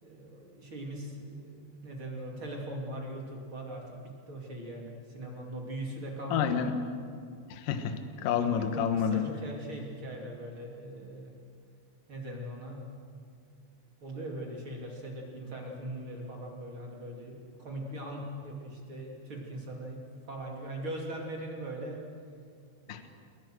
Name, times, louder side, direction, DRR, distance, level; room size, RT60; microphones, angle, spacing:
voice 1, 0.0-6.5 8.3-11.3 12.1-12.9 14.0-22.0 22.9-23.1, right 1 dB, 30° right, -1 dB, 2.7 m, -40 dB
voice 2, 6.3-6.7 7.5-9.3 22.9-23.1, left 8 dB, 75° left, 8 dB, 2.0 m, -29 dB
28.5 x 22.0 x 6.4 m, 2.3 s
omnidirectional pair, 5.9 m